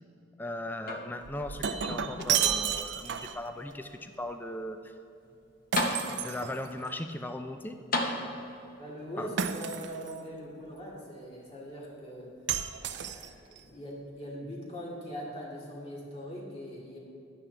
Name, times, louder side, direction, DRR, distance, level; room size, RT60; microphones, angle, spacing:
voice 1, 0.4-4.9 6.1-7.8 9.2-9.3, left 1 dB, 10° left, 7 dB, 0.3 m, -38 dB
sound 1, 0.8-1.5 1.9-2.9 3.6-3.7 5.3-5.4 5.8-6.5 7.9-8.8 9.8-9.9, left 2 dB, 45° left, 0.9 m, -34 dB
Shatter, 1.2-3.5 5.7-7.0 9.4-10.2 12.5-13.6, right 8 dB, 60° right, 0.4 m, -32 dB
voice 2, 8.8-17.0, equal, 30° left, -4 dB, 2.2 m, -42 dB
11.0 x 9.6 x 3.4 m, 2.7 s
head